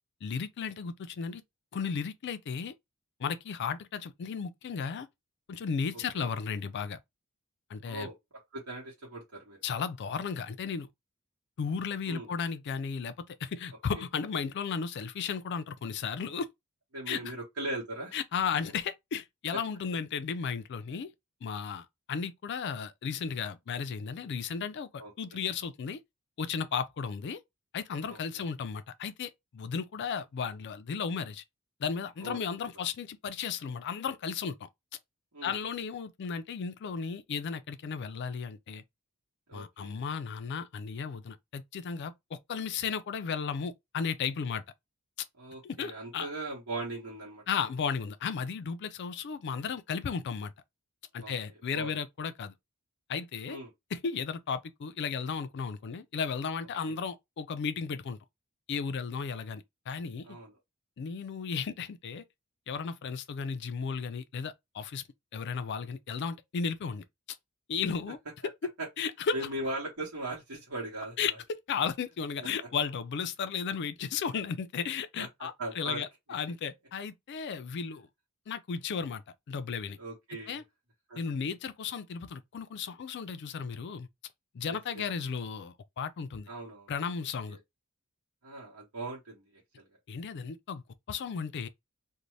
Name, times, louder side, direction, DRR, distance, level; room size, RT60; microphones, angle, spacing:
voice 1, 0.2-1.4 1.7-2.7 3.2-5.1 5.5-7.0 7.7-8.1 9.6-10.9 11.6-16.5 17.1-17.3 18.1-21.1 21.4-26.0 26.4-27.4 27.7-31.4 31.8-34.7 35.4-38.8 39.5-44.6 45.6-46.3 47.5-50.5 51.1-52.5 53.1-53.6 53.9-58.2 58.7-60.4 61.0-62.2 62.7-65.0 65.3-67.0 67.7-68.2 68.4-68.7 69.0-69.4 71.2-71.3 71.7-78.1 78.5-79.2 79.5-80.0 80.5-80.6 81.2-84.1 84.5-86.5 86.9-87.6 90.1-91.7, left 6 dB, 50° left, 0.4 m, -34 dB
voice 2, 7.8-8.1 8.5-9.6 12.1-12.3 14.0-14.1 16.9-18.1 25.0-25.4 28.1-28.4 32.2-32.4 35.3-35.5 39.5-40.0 45.4-47.4 51.2-51.3 51.7-51.9 53.5-53.7 60.2-60.5 68.8-68.9 69.3-71.3 72.4-72.5 75.2-76.0 80.0-80.6 81.1-81.2 84.7-85.0 86.5-86.9 87.5-87.6 88.4-89.8, right 2 dB, 75° right, 1.0 m, -39 dB
2.6 x 2.1 x 3.1 m
head